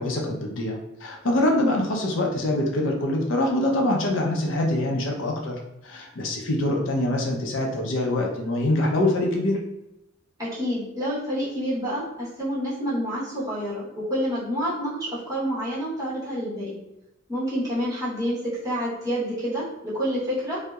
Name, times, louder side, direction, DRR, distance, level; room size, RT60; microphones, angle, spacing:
voice 1, 0.0-5.6 5.8-9.6, left 1 dB, 80° left, 1 dB, 0.5 m, -24 dB
voice 2, 10.4-16.8 17.3-20.6, equal, 20° right, -9 dB, 1.0 m, -28 dB
2.7 x 2.0 x 2.3 m, 0.88 s
head